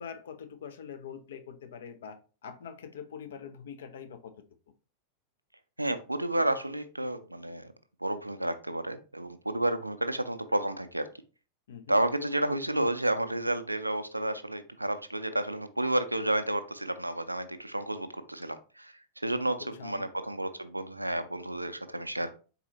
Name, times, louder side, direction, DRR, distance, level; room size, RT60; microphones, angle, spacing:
voice 1, 0.0-4.3 11.7-12.0 19.6-20.1, left 7 dB, 60° left, 0.6 m, -44 dB
voice 2, 5.8-7.7 8.0-11.1 11.9-18.9 19.2-22.4, right 1 dB, 85° right, 0.4 m, -31 dB
4.1 x 4.0 x 2.8 m
figure-of-eight pair, 90°, 0 cm